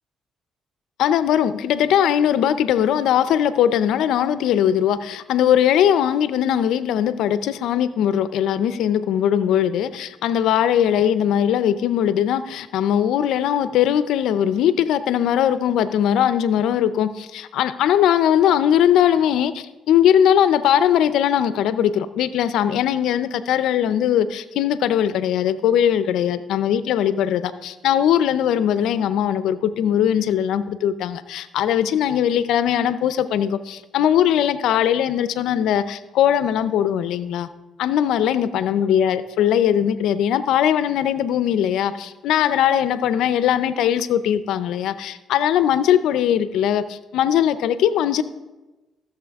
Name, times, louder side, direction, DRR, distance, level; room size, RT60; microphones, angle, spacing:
voice 1, 1.0-37.5 37.8-48.2, left 10 dB, 85° left, 13 dB, 0.5 m, -20 dB
14.5 x 6.9 x 3.5 m, 1.1 s
cardioid pair, 90°, 0 cm